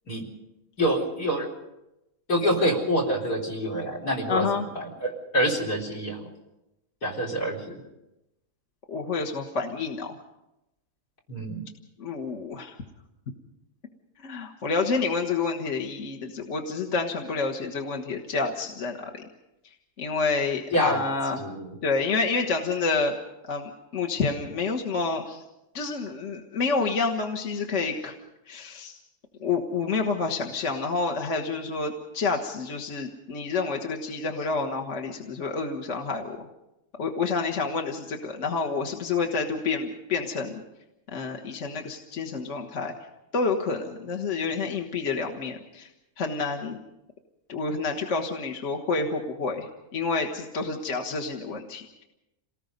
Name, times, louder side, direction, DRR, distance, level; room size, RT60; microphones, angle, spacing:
voice 1, 0.8-1.5 2.3-4.5 4.8-6.2 7.0-7.8 11.3-11.6 20.7-21.0 21.4-21.8, equal, 75° left, 3 dB, 4.6 m, -26 dB
voice 2, 4.3-4.7 8.9-10.2 12.0-12.8 14.2-19.3 20.0-21.4 21.8-23.1 23.5-25.4 25.7-28.2 28.5-29.0 29.4-36.4 37.0-40.6 41.1-42.9 43.3-45.9 46.2-46.8 47.5-52.0, left 4 dB, 50° left, 1 dB, 1.7 m, -29 dB
28.0 x 19.0 x 5.3 m, 0.92 s
omnidirectional pair, 1.7 m